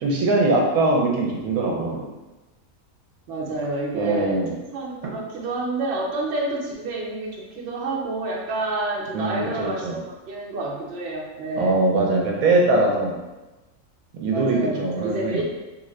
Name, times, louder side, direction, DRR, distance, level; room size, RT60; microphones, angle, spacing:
voice 1, 0.0-2.1 3.9-4.5 5.0-5.1 9.1-10.0 11.6-13.2 14.1-15.4, right 2 dB, 75° right, -1 dB, 1.0 m, -22 dB
voice 2, 3.3-4.4 4.7-11.8 14.3-15.4, right 2 dB, 60° right, -2 dB, 0.8 m, -29 dB
2.6 x 2.4 x 3.1 m, 1.1 s
omnidirectional pair, 1.5 m